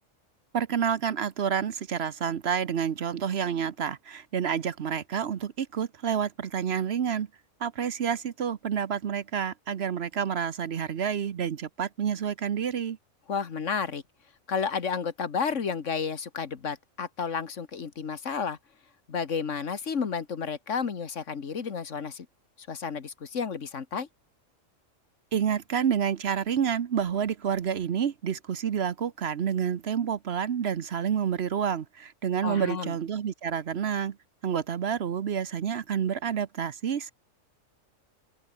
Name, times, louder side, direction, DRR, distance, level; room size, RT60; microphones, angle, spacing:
voice 1, 0.5-7.3 7.6-13.0 25.3-34.2 34.4-37.1, right 8 dB, 55° right, 1.0 m, -29 dB
voice 2, 13.3-14.0 14.5-18.6 19.1-22.3 22.6-24.1 32.4-32.9, left 6 dB, 70° left, 1.8 m, -31 dB
open air
omnidirectional pair, 1.3 m